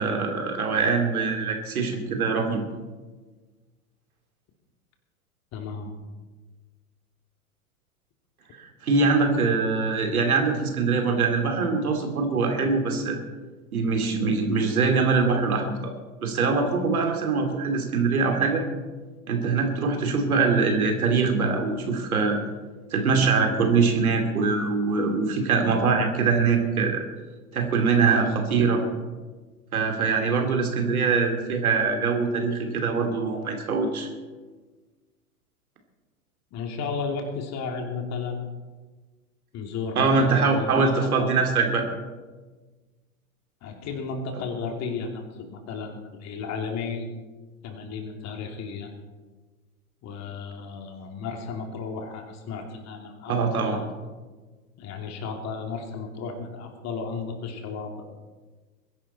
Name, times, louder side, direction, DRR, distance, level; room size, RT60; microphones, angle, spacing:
voice 1, 0.0-2.6 8.6-13.2 13.7-15.9 16.2-18.6 19.3-22.4 22.9-27.0 27.5-28.8 29.7-34.1 40.0-41.8 53.3-53.8, right 4 dB, 80° right, 3 dB, 2.8 m, -23 dB
voice 2, 5.5-5.9 36.5-38.5 39.5-41.5 43.6-47.1 47.6-48.9 50.0-53.8 54.8-57.9, left 5 dB, 40° left, 3 dB, 2.8 m, -33 dB
21.5 x 11.0 x 4.2 m, 1.3 s
hypercardioid pair, 95°, 43 cm